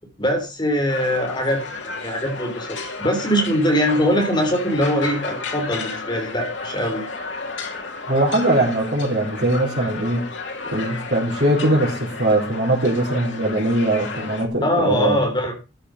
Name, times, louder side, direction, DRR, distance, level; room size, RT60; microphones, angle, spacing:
voice 1, 0.2-2.7 3.0-7.1 14.6-15.5, equal, 25° left, 2 dB, 3.8 m, -22 dB
sound 1, 0.9-14.5, left 3 dB, 80° left, 2.8 m, -32 dB
voice 2, 8.1-10.2 10.7-15.2, right 1 dB, 60° right, -6 dB, 4.5 m, -21 dB
13.5 x 7.2 x 5.2 m, 0.30 s
head